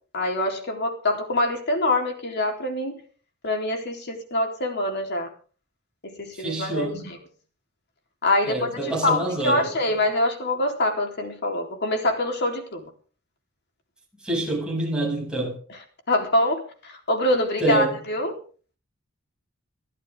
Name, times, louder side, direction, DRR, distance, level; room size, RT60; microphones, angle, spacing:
voice 1, 0.1-3.0 3.4-5.3 6.0-7.2 8.2-12.9 16.1-18.4, left 1 dB, 55° left, 3.8 m, -25 dB
voice 2, 6.3-7.1 8.4-9.7 14.2-15.6 17.6-18.0, right 2 dB, 5° right, 7.4 m, -26 dB
23.5 x 13.5 x 3.7 m
head